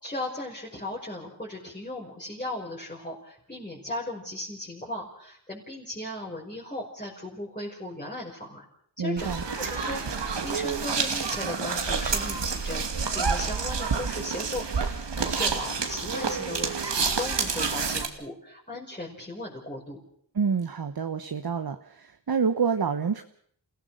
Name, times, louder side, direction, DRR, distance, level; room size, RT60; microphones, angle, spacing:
voice 1, 0.0-8.6 9.0-12.9 13.1-20.0, left 1 dB, 20° left, -4 dB, 5.9 m, -37 dB
voice 2, 9.0-9.4 20.3-23.2, right 6 dB, 60° right, 8 dB, 1.3 m, -27 dB
sound 1, 9.2-18.1, right 5 dB, 80° right, 2.6 m, -28 dB
29.0 x 16.5 x 6.5 m, 0.63 s
wide cardioid pair, 70°, 42 cm